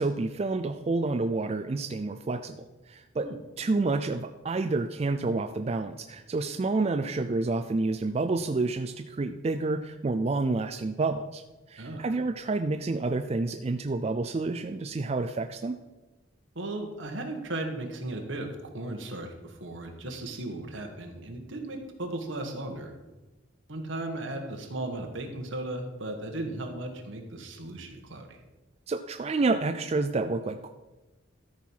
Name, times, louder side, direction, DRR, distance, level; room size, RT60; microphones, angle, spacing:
voice 1, 0.0-3.3 3.6-11.4 11.7-15.8 28.9-30.7, right 3 dB, 30° right, 7 dB, 0.3 m, -29 dB
voice 2, 16.5-22.9 23.7-28.4, right 2 dB, 70° right, 4 dB, 1.5 m, -36 dB
13.5 x 4.6 x 5.6 m, 1.1 s
head